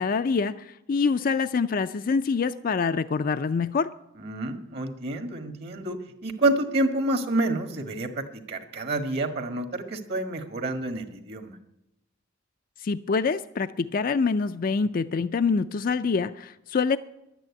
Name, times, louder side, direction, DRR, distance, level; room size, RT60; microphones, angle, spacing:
voice 1, 0.0-3.9 12.8-17.0, left 5 dB, 45° left, 11 dB, 0.4 m, -25 dB
voice 2, 4.2-11.5, right 2 dB, 55° right, 7 dB, 1.6 m, -28 dB
11.5 x 9.2 x 9.6 m, 0.87 s
head